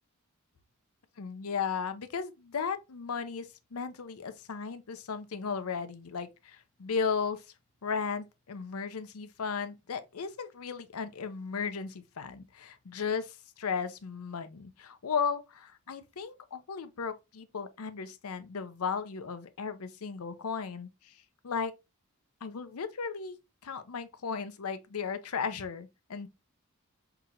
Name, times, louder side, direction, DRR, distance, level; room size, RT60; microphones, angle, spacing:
voice 1, 1.2-7.4 7.8-21.2 21.4-21.7 22.4-26.3, left 6 dB, 85° left, 0.6 m, -35 dB
5.9 x 2.9 x 2.4 m
head